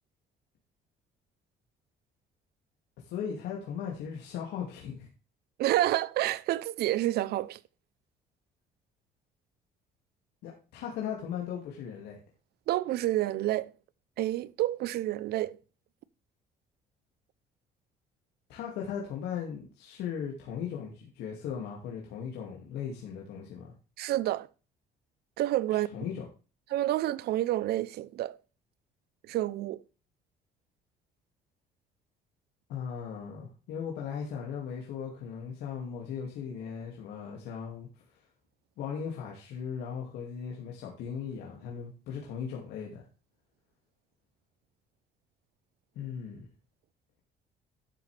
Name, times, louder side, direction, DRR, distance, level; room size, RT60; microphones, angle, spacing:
voice 1, 3.0-5.1 10.4-12.2 18.5-23.7 25.7-26.2 32.7-37.9 38.8-43.0 46.0-46.5, left 7 dB, 80° left, 2.3 m, -38 dB
voice 2, 5.6-7.6 12.7-13.7 14.2-15.6 24.0-24.5 25.4-25.9 26.7-28.4 29.3-29.8, right 14 dB, 70° right, 0.7 m, -29 dB
11.5 x 7.5 x 3.4 m
cardioid pair, 110°, 17 cm